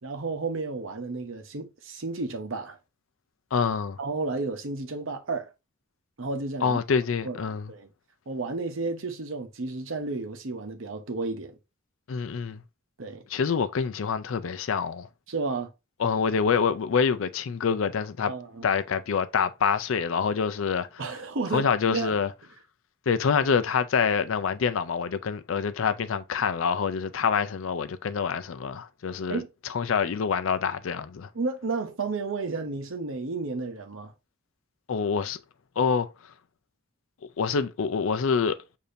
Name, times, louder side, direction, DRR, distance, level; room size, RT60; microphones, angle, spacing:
voice 1, 0.0-2.8 4.0-5.5 6.2-6.8 7.2-7.9 8.3-11.6 13.0-13.2 15.3-15.7 18.2-18.7 21.0-22.1 29.3-29.5 31.3-34.1, right 3 dB, 65° right, 0.8 m, -32 dB
voice 2, 3.5-4.0 6.6-7.7 12.1-12.6 13.3-15.1 16.0-18.3 18.6-21.0 21.5-22.3 23.1-29.4 29.7-31.3 34.9-35.4 35.8-36.1 37.4-38.6, left 6 dB, 70° left, 0.4 m, -26 dB
6.7 x 2.7 x 2.6 m
head